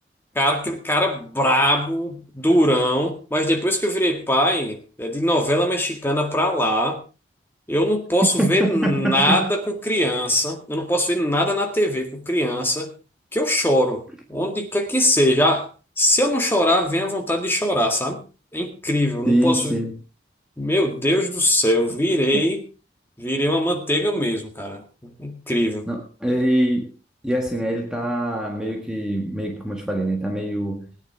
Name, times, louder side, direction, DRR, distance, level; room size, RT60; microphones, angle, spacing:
voice 1, 0.4-7.0 7.7-12.9 13.3-14.0 14.3-15.7 16.0-18.2 18.5-19.8 20.6-22.6 23.2-24.8 25.2-25.9, equal, 10° left, 1.9 m, -21 dB
voice 2, 8.4-9.5 19.2-20.0 25.9-26.9 27.2-30.9, right 1 dB, 5° right, 1.6 m, -24 dB
20.0 x 9.7 x 3.6 m
head